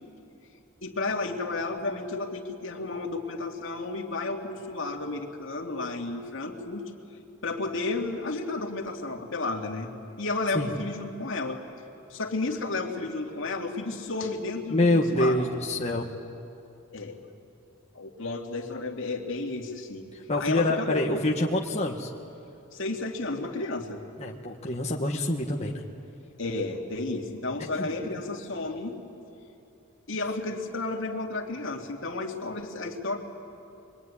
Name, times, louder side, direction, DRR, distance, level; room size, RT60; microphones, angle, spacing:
voice 1, 0.8-6.8 7.4-9.9 10.2-11.6 12.1-15.3 16.9-17.2 17.9-20.1 20.4-21.2 22.7-24.0 26.4-28.9 30.1-33.2, left 3 dB, 65° left, 1 dB, 2.6 m, -32 dB
voice 2, 14.7-16.1 20.1-22.1 24.2-25.8 27.7-27.9, left 1 dB, 30° left, -2 dB, 1.5 m, -26 dB
26.0 x 23.0 x 9.9 m, 2.7 s
head